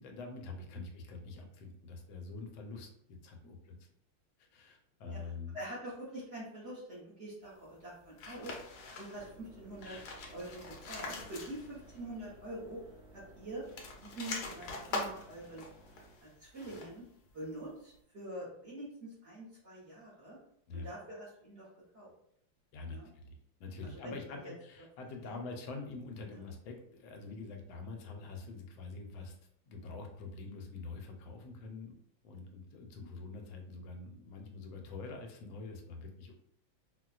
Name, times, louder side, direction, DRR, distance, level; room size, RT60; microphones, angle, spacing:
voice 1, 0.0-3.7 4.4-5.6 9.8-10.2 10.4-10.6 20.7-20.9 22.7-23.3 23.6-29.4 29.7-31.9 32.2-36.3, left 3 dB, 85° left, 3 dB, 1.4 m, -45 dB
voice 2, 5.5-8.6 8.9-10.0 10.3-12.8 13.1-13.6 14.0-15.6 16.2-17.0 17.3-20.4 20.7-21.7 21.9-22.1 22.9-23.1 23.8-24.2 24.4-24.5 25.2-25.4, right 1 dB, 45° right, -8 dB, 0.9 m, -45 dB
sound 1, 8.2-9.3 9.7-12.0 12.2-12.3 13.6-17.1, left 3 dB, 65° left, 1.0 m, -43 dB
sound 2, 9.1-16.2, right 2 dB, 70° right, 1.2 m, -58 dB
4.1 x 2.2 x 2.3 m, 0.69 s
omnidirectional pair, 2.1 m